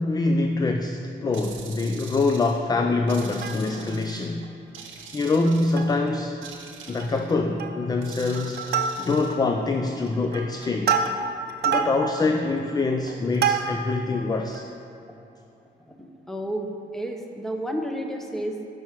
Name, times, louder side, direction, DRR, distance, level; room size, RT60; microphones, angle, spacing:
voice 1, 0.0-4.5 5.1-6.4 6.9-11.0 11.6-14.7, left 3 dB, 20° left, 5 dB, 0.4 m, -25 dB
sound 1, 1.3-2.6 3.1-4.3 4.7-6.0 6.4-7.4 8.0-9.3, right 6 dB, 80° right, 0.8 m, -44 dB
Plucked string instrument, 3.2-4.0 4.4-4.5 4.8-5.0 5.4-6.1 6.4-6.5 6.9-7.2 7.6-8.0 8.3-9.4 9.9-14.0 14.5-14.6, right 6 dB, 55° right, 0.6 m, -28 dB
voice 2, 15.9-16.7 16.9-18.5, equal, ahead, 2 dB, 0.8 m, -31 dB
6.1 x 4.8 x 5.7 m, 2.8 s
cardioid pair, 90°, 20 cm